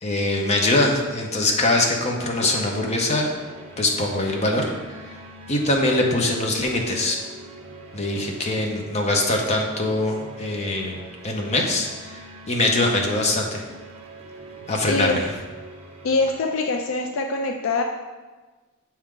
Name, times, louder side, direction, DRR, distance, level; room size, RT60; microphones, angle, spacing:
voice 1, 0.0-3.4 3.8-5.2 5.5-7.2 7.9-13.6 14.7-15.3, left 2 dB, 30° left, 1 dB, 0.8 m, -23 dB
sound 1, 2.2-16.3, right 2 dB, 30° right, 0.7 m, -43 dB
voice 2, 14.9-15.2 16.0-17.8, left 3 dB, 65° left, 4 dB, 0.4 m, -23 dB
6.4 x 4.4 x 3.7 m, 1.3 s
head